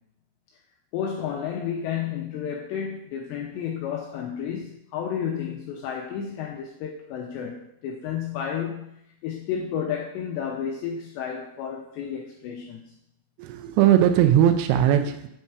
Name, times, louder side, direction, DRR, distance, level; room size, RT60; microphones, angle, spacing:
voice 1, 0.9-12.9, left 8 dB, 85° left, 0 dB, 2.6 m, -31 dB
voice 2, 13.4-15.3, right 11 dB, 85° right, 6 dB, 2.5 m, -19 dB
8.5 x 4.5 x 4.7 m, 0.77 s
omnidirectional pair, 5.7 m